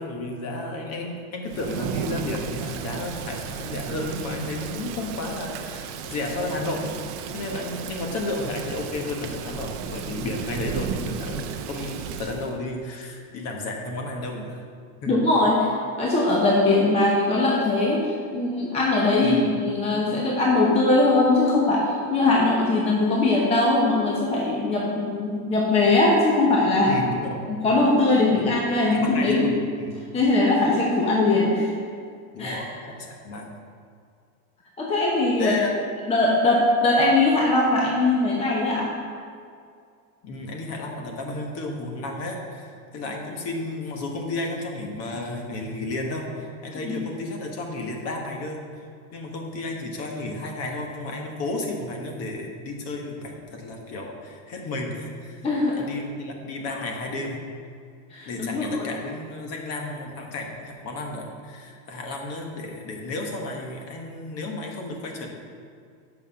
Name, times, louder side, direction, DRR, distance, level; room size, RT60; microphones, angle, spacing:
voice 1, 0.0-6.9 7.3-14.6 15.0-15.2 19.2-19.5 26.9-27.4 28.4-28.5 28.9-30.0 32.3-32.7 33.0-33.5 35.4-35.7 40.2-55.4 55.7-57.4 58.3-65.3, left 2 dB, 35° left, 2 dB, 1.3 m, -32 dB
Thunder / Rain, 1.5-12.5, right 7 dB, 40° right, 0.6 m, -34 dB
voice 2, 15.1-15.7 16.0-26.9 27.5-29.5 30.1-31.7 32.4-32.6 34.8-35.5 36.1-38.9 46.7-47.0 55.4-55.8 58.1-58.9, left 2 dB, 15° left, -3 dB, 0.8 m, -21 dB
8.3 x 5.9 x 5.5 m, 2.3 s
supercardioid pair, 150°, 44 cm